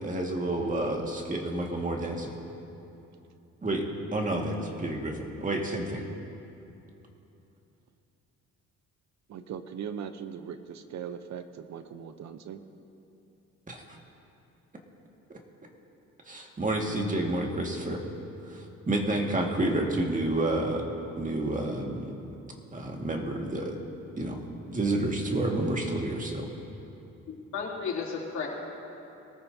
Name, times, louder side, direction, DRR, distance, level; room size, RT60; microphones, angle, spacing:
voice 1, 0.0-2.4 3.6-3.8 4.1-6.0 13.7-13.8 16.3-18.1 18.5-20.9 21.2-22.1 22.7-23.8 24.2-26.5, right 1 dB, 25° right, 1 dB, 1.9 m, -30 dB
voice 2, 9.3-12.6, right 8 dB, 65° right, 10 dB, 0.8 m, -39 dB
voice 3, 27.3-28.5, left 5 dB, 70° left, -4 dB, 3.2 m, -33 dB
23.0 x 14.0 x 2.8 m, 2.9 s
cardioid pair, 90°, 30 cm